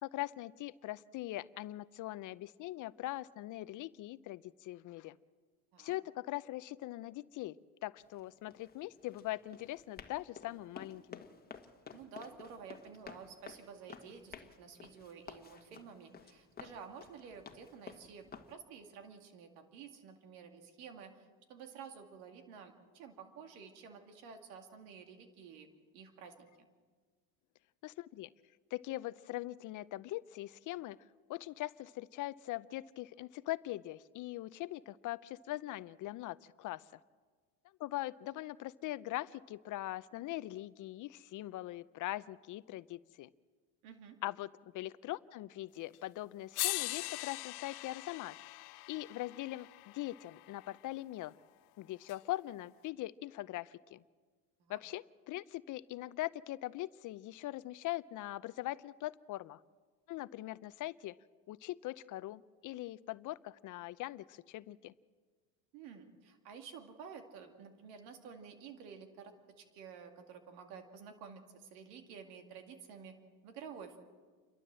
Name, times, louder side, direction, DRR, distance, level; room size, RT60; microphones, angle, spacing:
voice 1, 0.0-5.2 5.8-7.6 7.8-11.2 27.8-28.3 28.7-31.0 31.3-36.9 37.8-43.3 44.2-48.4 48.9-51.3 51.8-54.0 54.7-59.6 60.1-61.2 61.5-64.9, left 16 dB, 45° left, 16 dB, 0.5 m, -41 dB
Run, 8.0-18.5, left 6 dB, 20° left, 1.5 m, -53 dB
voice 2, 11.9-25.7 25.9-26.5 43.8-44.2 54.6-54.8 65.7-73.2 73.4-74.0, right 6 dB, 80° right, 5 dB, 2.3 m, -51 dB
sound 1, 45.9-46.0 46.5-50.7 52.1-52.2, left 22 dB, 85° left, 0.7 m, -41 dB
29.5 x 12.5 x 7.6 m, 1.5 s
supercardioid pair, 110°, 44 cm